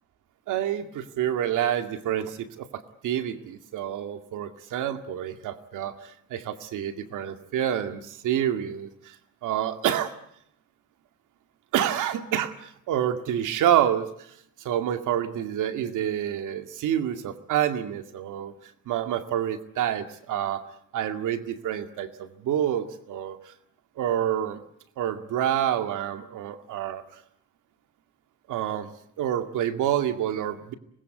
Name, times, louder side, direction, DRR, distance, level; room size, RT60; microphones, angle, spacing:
voice 1, 0.5-9.2 9.4-10.1 11.7-14.1 14.6-18.5 18.9-20.6 20.9-23.5 24.0-24.6 25.0-27.0 28.5-28.9 29.2-30.7, right 10 dB, 85° right, 8 dB, 2.2 m, -28 dB
26.0 x 20.5 x 9.4 m, 0.71 s
cardioid pair, 90°, 30 cm